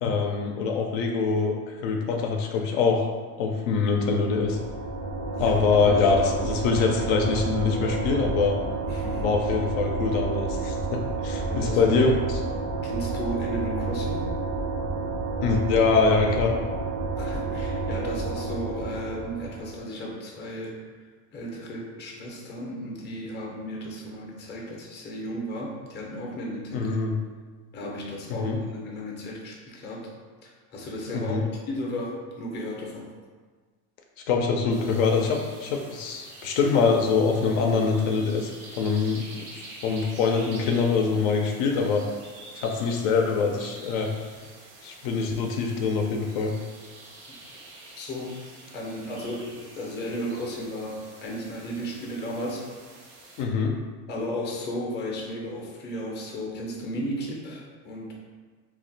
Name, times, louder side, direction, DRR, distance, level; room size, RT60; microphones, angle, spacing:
voice 1, 0.0-3.1 3.4-4.6 5.4-8.6 9.2-12.4 15.4-16.5 26.7-27.1 28.4-28.6 31.1-31.4 34.3-39.4 39.8-42.0 42.6-44.1 44.8-46.5 53.4-53.7, left 4 dB, 70° left, 2 dB, 0.5 m, -24 dB
sound 1, 3.9-19.8, right 3 dB, 40° right, 0.5 m, -30 dB
voice 2, 5.3-5.9 8.9-9.3 11.4-11.8 12.8-14.3 17.2-20.8 21.3-26.9 27.7-30.1 30.4-33.1 48.0-48.4 48.7-52.7 54.1-58.1, equal, 25° left, -1 dB, 0.6 m, -34 dB
sound 2, 34.7-53.4, right 2 dB, 80° right, 0.9 m, -47 dB
2.4 x 2.1 x 3.8 m, 1.5 s
supercardioid pair, 120°, 45 cm